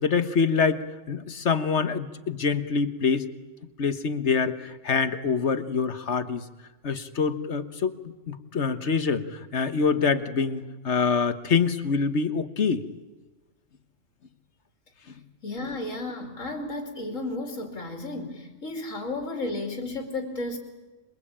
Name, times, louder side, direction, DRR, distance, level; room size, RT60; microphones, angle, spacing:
voice 1, 0.0-3.3 3.8-6.4 6.8-8.0 8.3-12.8, left 5 dB, 60° left, 11 dB, 1.5 m, -25 dB
voice 2, 15.4-20.6, left 2 dB, 80° left, 3 dB, 3.3 m, -33 dB
27.0 x 22.0 x 8.7 m, 1.1 s
omnidirectional pair, 1.3 m